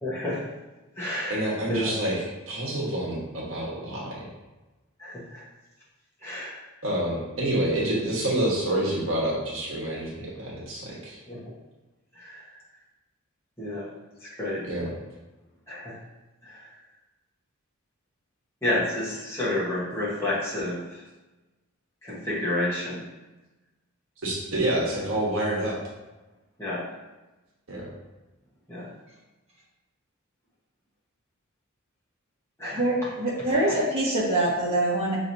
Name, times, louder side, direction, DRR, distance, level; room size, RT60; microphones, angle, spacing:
voice 1, 0.0-0.4 1.0-1.3 1.7-1.9 5.0-5.4 6.2-6.5 11.3-11.4 13.6-13.9 14.4-14.7 15.7-15.9 18.6-20.8 22.0-23.0 26.6-26.8 28.7-28.9 32.6-32.8, left 1 dB, 10° left, -9 dB, 1.2 m, -29 dB
voice 2, 1.3-4.3 6.8-11.2 14.6-15.0 24.2-25.8 27.7-27.8, right 1 dB, 70° right, -5 dB, 1.3 m, -28 dB
voice 3, 32.7-35.2, right 1 dB, 30° right, -7 dB, 1.3 m, -24 dB
6.0 x 3.0 x 2.7 m, 1.1 s
head